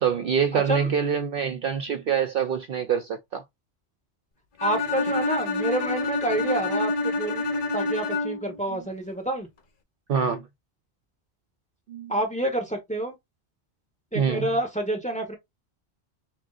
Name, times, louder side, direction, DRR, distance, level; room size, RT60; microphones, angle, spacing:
voice 1, 0.0-3.4 8.7-8.8 10.1-10.5 11.9-12.2 14.1-14.5, right 7 dB, 60° right, 0.7 m, -25 dB
voice 2, 0.5-0.9 4.6-9.5 12.1-13.2 14.1-15.3, right 1 dB, 5° left, 1.0 m, -28 dB
Bowed string instrument, 4.6-8.6, left 2 dB, 50° left, 0.8 m, -27 dB
6.0 x 2.2 x 2.4 m
omnidirectional pair, 1.2 m